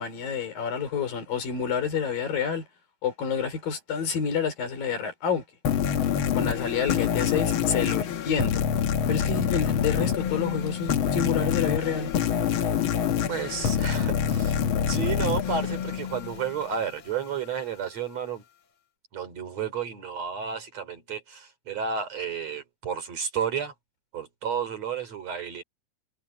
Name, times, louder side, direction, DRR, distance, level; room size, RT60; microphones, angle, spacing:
voice 1, 0.0-2.7 3.0-5.4 6.4-8.6 9.1-12.1, left 6 dB, 85° left, 6.3 m, -28 dB
sound 1, 5.6-16.8, left 8 dB, 70° left, 1.2 m, -26 dB
voice 2, 13.3-18.4 19.1-23.7 24.1-25.6, right 7 dB, 50° right, 4.2 m, -32 dB
omnidirectional pair, 3.9 m